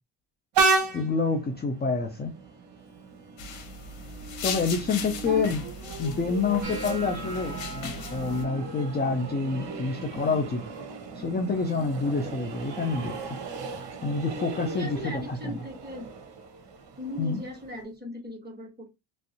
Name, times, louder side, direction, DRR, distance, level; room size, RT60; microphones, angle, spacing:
Train, 0.5-17.8, right 4 dB, 65° right, 0.9 m, -34 dB
voice 1, 0.9-2.3 4.4-5.6 6.0-10.6 11.2-13.4 14.0-15.6 17.2-17.4, left 4 dB, 25° left, 3 dB, 0.4 m, -28 dB
sound 1, 3.4-8.4, left 5 dB, 80° left, 1.0 m, -38 dB
sound 2, 6.6-12.7 13.0-13.5 13.8-14.4 15.0-15.2 17.0-17.1, right 1 dB, 40° right, 1.4 m, -45 dB
voice 2, 14.6-16.1 17.0-18.9, equal, 20° right, 0 dB, 1.4 m, -37 dB
3.0 x 2.7 x 2.8 m, 0.23 s
cardioid pair, 120°, 46 cm